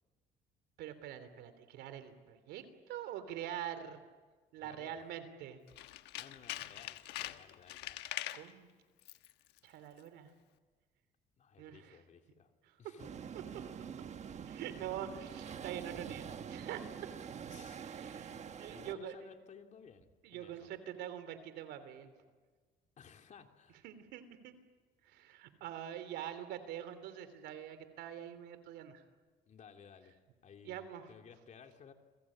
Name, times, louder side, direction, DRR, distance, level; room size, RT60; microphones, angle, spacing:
voice 1, 0.8-4.0 4.5-5.6 8.3-8.7 9.6-10.3 11.6-12.0 12.7-12.8 14.4-17.1 17.7-19.1 20.2-22.1 23.8-24.5 25.0-29.0 30.6-31.1, right 10 dB, 85° right, 11 dB, 3.2 m, -45 dB
voice 2, 4.6-5.1 6.2-8.0 11.4-12.5 12.8-13.1 17.5-18.4 18.7-20.7 23.0-23.8 29.5-31.9, left 7 dB, 45° left, 5 dB, 2.9 m, -57 dB
Tools, 5.7-8.5 9.0-9.3 9.6-9.7, left 14 dB, 85° left, 1.2 m, -43 dB
sound 1, 13.0-18.9, right 7 dB, 40° right, 1.4 m, -45 dB
29.5 x 22.0 x 8.7 m, 1.4 s
cardioid pair, 110°, 17 cm